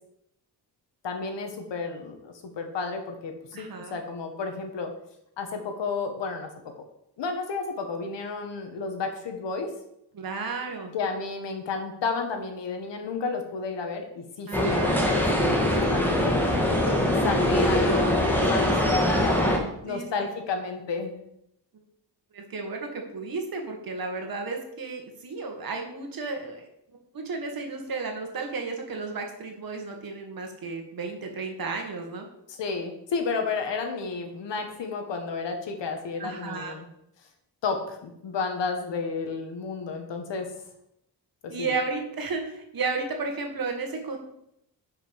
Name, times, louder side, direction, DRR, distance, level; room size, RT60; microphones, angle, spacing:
voice 1, 1.0-4.9 5.4-6.5 7.2-9.7 10.9-19.5 19.8-21.1 32.5-36.8 37.6-40.5 41.4-41.7, left 4 dB, 90° left, 5 dB, 1.8 m, -32 dB
voice 2, 3.5-4.0 10.1-10.9 14.5-15.0 19.8-20.1 22.3-26.7 27.1-32.3 36.2-36.7 41.5-44.2, right 4 dB, 55° right, 3 dB, 2.0 m, -33 dB
sound 1, 14.5-19.6, left 1 dB, 5° left, 1.8 m, -23 dB
10.5 x 5.8 x 5.4 m, 0.78 s
wide cardioid pair, 145°, 42 cm